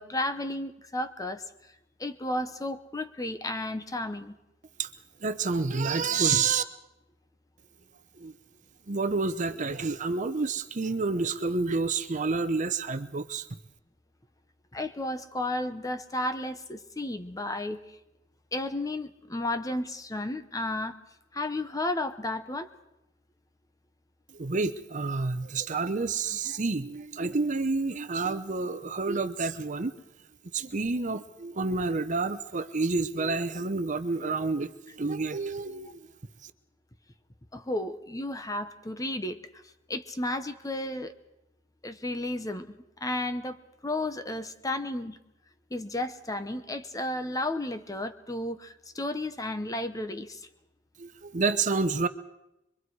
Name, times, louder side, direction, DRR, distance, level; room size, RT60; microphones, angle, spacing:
voice 1, 0.0-1.4 2.0-4.4 14.7-18.0 18.5-21.0 21.3-22.7 37.5-39.4 39.9-41.1 41.8-45.2 45.7-50.5, left 1 dB, 20° left, 10 dB, 0.8 m, -33 dB
voice 2, 5.2-6.6 8.2-8.3 8.9-13.5 24.4-29.9 30.5-36.0 51.0-52.1, right 4 dB, 40° right, 10 dB, 0.8 m, -29 dB
24.5 x 23.0 x 4.7 m, 0.88 s
head